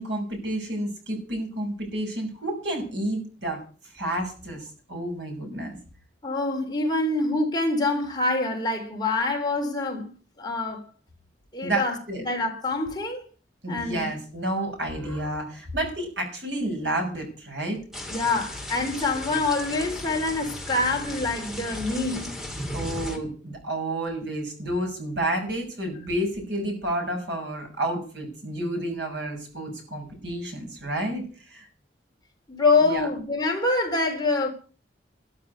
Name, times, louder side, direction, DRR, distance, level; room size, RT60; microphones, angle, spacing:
voice 1, 0.0-3.6 3.9-5.8 11.6-12.2 13.6-17.8 22.7-31.7 32.8-33.1, right 1 dB, 70° right, 6.4 m, -30 dB
voice 2, 6.2-10.1 10.4-10.8 11.5-13.2 13.7-14.1 18.1-22.3 32.5-34.5, left 3 dB, 20° left, 3.5 m, -25 dB
sound 1, 17.9-23.2, left 1 dB, ahead, 2.3 m, -36 dB
13.0 x 7.7 x 9.7 m
head